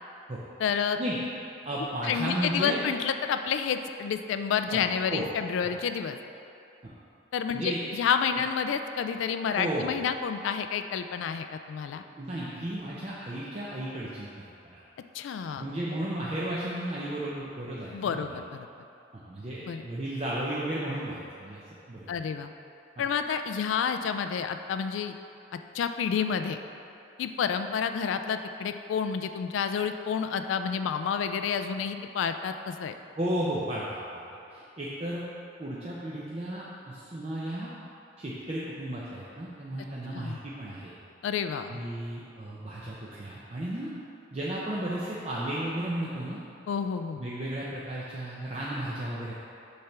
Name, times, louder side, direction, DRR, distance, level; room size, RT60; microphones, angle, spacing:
voice 1, 0.6-1.0 2.0-6.2 7.3-12.0 15.1-15.7 17.9-18.7 19.7-19.8 22.1-22.5 23.0-25.1 25.7-26.6 27.2-32.9 40.1-40.4 41.2-41.8 46.7-47.2, left 7 dB, 80° left, 8 dB, 0.3 m, -29 dB
voice 2, 1.7-2.8 4.7-4.8 5.1-5.2 6.8-6.9 7.5-7.8 9.5-9.9 12.2-14.8 15.6-18.3 19.1-21.6 21.9-22.2 33.2-34.2 34.5-35.2 35.6-37.7 38.2-40.9 41.7-43.9 44.3-46.4 47.2-49.3, right 1 dB, 35° right, -7 dB, 0.6 m, -34 dB
6.7 x 3.3 x 5.7 m, 2.7 s
head